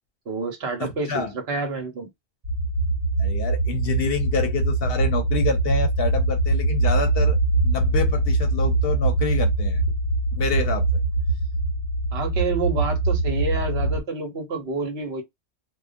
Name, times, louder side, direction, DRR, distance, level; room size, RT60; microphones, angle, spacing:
voice 1, 0.3-2.1 12.1-15.2, right 4 dB, 70° right, 1.1 m, -28 dB
voice 2, 0.8-1.3 3.2-7.4 7.6-9.8 10.3-11.0, left 5 dB, 65° left, 0.8 m, -28 dB
sound 1, 2.4-14.0, right 2 dB, 45° right, 1.0 m, -22 dB
2.3 x 2.2 x 2.4 m
omnidirectional pair, 1.2 m